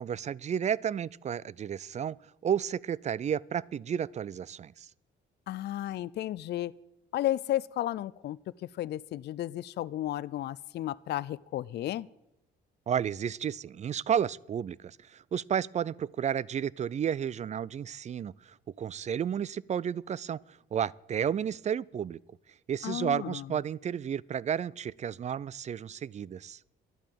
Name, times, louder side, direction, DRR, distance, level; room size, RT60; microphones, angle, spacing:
voice 1, 0.0-2.2 2.4-4.9 12.9-22.2 22.7-26.6, right 8 dB, 35° right, 0.4 m, -32 dB
voice 2, 5.5-6.7 7.1-12.1 22.8-23.5, left 13 dB, 60° left, 0.4 m, -33 dB
11.0 x 8.7 x 7.6 m
cardioid pair, 90°, 20 cm